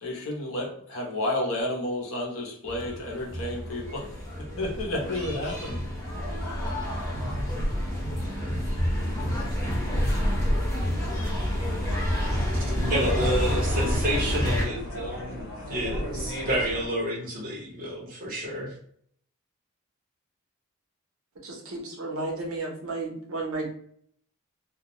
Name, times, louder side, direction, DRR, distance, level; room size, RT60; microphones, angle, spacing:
voice 1, 0.0-4.0 4.6-5.8, left 1 dB, 70° left, -1 dB, 0.8 m, -31 dB
sound 1, 2.7-14.7, equal, 10° left, 1.1 m, -28 dB
sound 2, 11.5-16.9, equal, 55° left, 1.2 m, -36 dB
voice 2, 12.9-18.7, equal, 40° right, -3 dB, 0.9 m, -29 dB
voice 3, 21.4-23.7, right 2 dB, 75° right, 0 dB, 0.8 m, -33 dB
2.3 x 2.2 x 2.9 m, 0.63 s
head